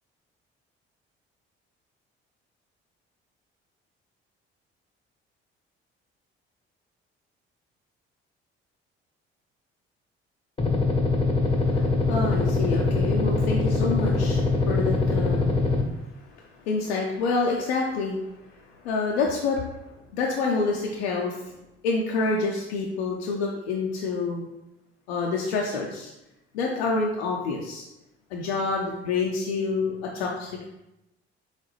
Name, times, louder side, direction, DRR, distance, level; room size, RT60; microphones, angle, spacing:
sound 1, 10.6-15.8, left 3 dB, 20° left, 0.7 m, -23 dB
voice 1, 11.6-15.5 16.7-18.2 18.8-19.6 20.1-21.5 21.8-24.4 25.1-26.1 26.5-27.9 28.3-30.7, left 4 dB, 80° left, -1 dB, 0.5 m, -27 dB
4.0 x 3.7 x 3.1 m, 0.91 s
hypercardioid pair, 50°, 31 cm